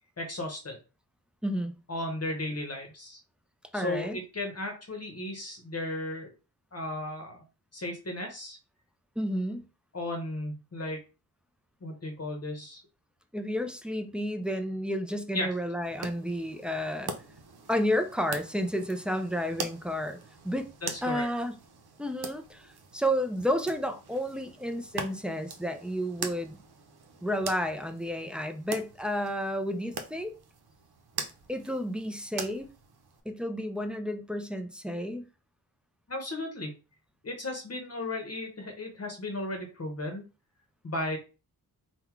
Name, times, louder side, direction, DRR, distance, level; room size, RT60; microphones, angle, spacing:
voice 1, 0.2-0.8 1.9-3.2 3.7-6.3 6.7-7.4 7.7-8.6 9.9-11.0 11.8-12.8 15.3-15.5 20.8-21.3 36.1-36.7 37.2-40.2 40.8-41.2, left 1 dB, 40° left, 0.9 m, -35 dB
voice 2, 1.4-1.7 3.7-4.2 9.2-9.6 13.3-17.1 17.7-20.2 20.4-20.7 21.0-21.5 22.0-26.6 27.2-30.4 31.5-32.7 33.3-35.2, equal, 5° right, 0.5 m, -31 dB
sound 1, 15.8-33.2, right 5 dB, 80° right, 0.8 m, -43 dB
3.8 x 2.3 x 4.5 m
wide cardioid pair, 110°, 38 cm